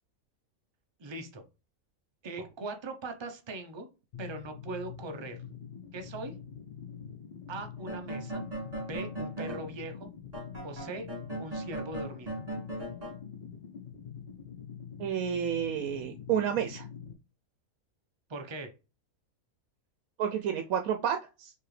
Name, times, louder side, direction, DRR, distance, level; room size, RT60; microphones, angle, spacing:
voice 1, 1.0-1.5 2.2-3.9 4.2-5.4 5.9-6.3 7.5-8.4 8.8-10.1 10.6-11.1 11.4-12.4 18.3-18.7, right 2 dB, 50° right, 6 dB, 0.3 m, -40 dB
sound 1, 4.1-17.1, left 7 dB, 85° left, 0.4 m, -45 dB
sound 2, 7.8-9.7 10.3-13.2, right 1 dB, 25° right, 1.9 m, -38 dB
voice 2, 15.0-16.8 20.2-21.5, right 8 dB, 80° right, 6 dB, 1.0 m, -30 dB
4.8 x 3.4 x 3.1 m, 0.31 s
omnidirectional pair, 1.5 m